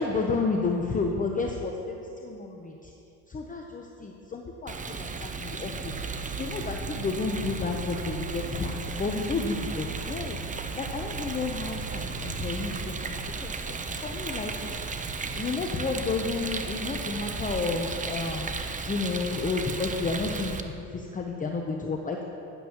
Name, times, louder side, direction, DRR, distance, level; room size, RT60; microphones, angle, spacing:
voice 1, 0.0-2.9 3.3-13.1 13.4-14.8 15.4-20.6 20.9-22.2, left 4 dB, 20° left, 1 dB, 0.7 m, -31 dB
Rain, 4.7-20.6, right 4 dB, 15° right, 0.6 m, -35 dB
sound 1, 5.6-13.2, right 4 dB, 65° right, 1.7 m, -40 dB
12.0 x 10.5 x 3.0 m, 2.8 s
hypercardioid pair, 80°, 46 cm